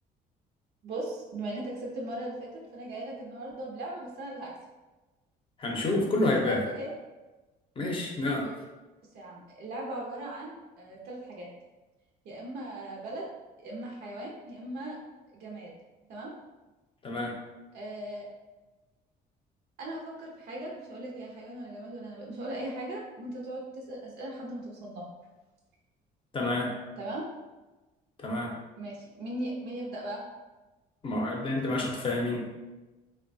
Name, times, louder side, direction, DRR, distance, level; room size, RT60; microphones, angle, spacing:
voice 1, 0.8-4.5 6.2-6.9 8.4-8.5 9.1-11.5 12.2-13.3 13.6-15.0 15.3-15.7 16.1-16.3 17.7-18.3 19.8-25.1 27.0-27.2 28.8-30.2, right 1 dB, 70° right, -3 dB, 0.6 m, -38 dB
voice 2, 5.6-6.6 7.8-8.5 17.0-17.4 26.3-26.7 28.2-28.5 31.0-32.4, left 2 dB, 30° left, 0 dB, 0.6 m, -28 dB
3.0 x 2.2 x 2.6 m, 1.1 s
cardioid pair, 110°, 17 cm